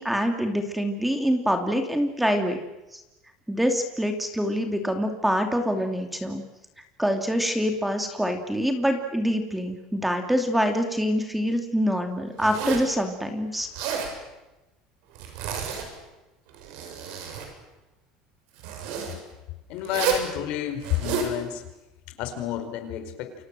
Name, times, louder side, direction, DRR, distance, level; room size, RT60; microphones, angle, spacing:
voice 1, 0.0-2.6 2.9-3.0 3.5-6.4 7.0-13.7, equal, 5° right, 5 dB, 2.9 m, -25 dB
Zipper (clothing), 12.4-12.9 13.6-14.1 15.1-16.0 16.5-17.5 18.6-19.1 19.8-20.3 20.8-21.3, right 7 dB, 75° right, 7.8 m, -30 dB
voice 2, 19.7-21.6 22.2-23.3, left 11 dB, 65° left, 8 dB, 5.1 m, -30 dB
29.0 x 26.0 x 7.8 m, 1.0 s
supercardioid pair, 130°, 2 cm